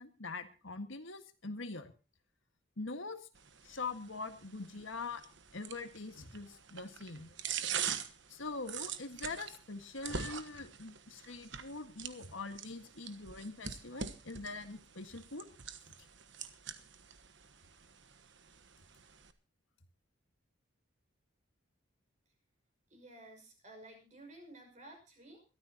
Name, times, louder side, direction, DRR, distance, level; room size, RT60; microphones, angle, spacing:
voice 1, 0.0-1.9 2.8-3.3 3.6-5.2 5.5-7.4 8.3-15.5, left 3 dB, 70° left, 7 dB, 1.7 m, -43 dB
sound 1, 3.4-19.3, right 7 dB, 60° right, 1.3 m, -44 dB
voice 2, 22.9-25.4, right 1 dB, 35° right, 4 dB, 6.0 m, -54 dB
22.0 x 13.5 x 2.9 m, 0.32 s
head